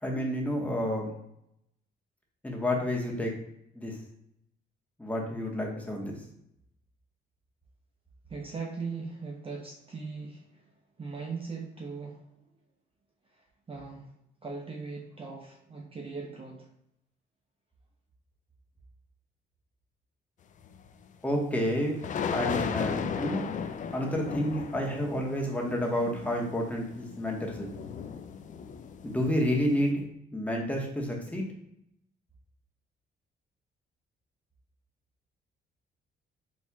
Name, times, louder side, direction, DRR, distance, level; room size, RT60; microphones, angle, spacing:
voice 1, 0.0-1.1 2.4-3.3 3.7-4.0 5.0-6.2 21.2-21.9 22.3-23.4 23.9-27.7 29.0-30.1 30.3-31.5, equal, 5° left, -1 dB, 1.1 m, -30 dB
voice 2, 8.3-10.7 11.0-12.3 13.3-14.1 14.4-16.7, right 4 dB, 30° right, 0 dB, 0.6 m, -39 dB
sound 1, 20.6-20.8 22.0-29.9, left 6 dB, 40° left, 0.4 m, -36 dB
4.4 x 4.3 x 2.2 m, 0.78 s
cardioid pair, 90°, 20 cm